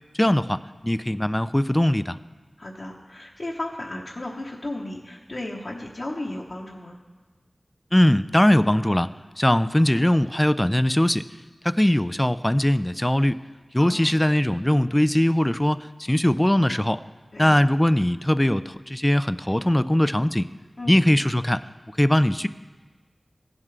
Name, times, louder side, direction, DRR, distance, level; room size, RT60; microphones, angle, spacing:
voice 1, 0.2-2.2 7.9-9.1 9.4-11.3 11.7-13.4 13.7-17.0 17.4-20.5 20.9-21.6 22.0-22.5, left 1 dB, 15° left, 14 dB, 0.3 m, -20 dB
voice 2, 2.6-7.0 13.8-14.2 17.3-17.6 20.8-20.9, left 1 dB, 55° left, -4 dB, 1.0 m, -34 dB
16.0 x 7.3 x 3.3 m, 1.4 s
wide cardioid pair, 55°, 0 cm